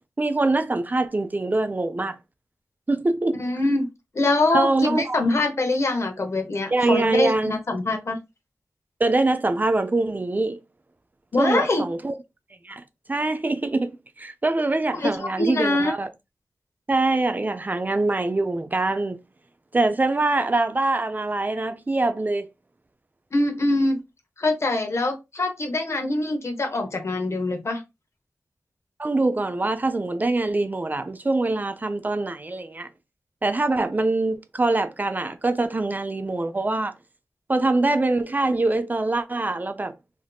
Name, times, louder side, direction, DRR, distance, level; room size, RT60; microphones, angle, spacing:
voice 1, 0.2-2.2 2.9-3.4 4.5-5.2 6.7-7.5 9.0-10.6 11.4-12.1 12.6-12.8 13.1-13.9 14.2-16.1 16.9-19.2 19.7-22.5 29.0-32.9 33.4-36.9 37.5-40.0, right 2 dB, 30° right, 0.4 m, -24 dB
voice 2, 3.3-3.9 4.1-8.2 11.3-11.9 14.9-15.9 23.3-24.0 24.4-27.8, left 2 dB, 55° left, 0.8 m, -24 dB
3.4 x 2.6 x 2.3 m
cardioid pair, 55°, 5 cm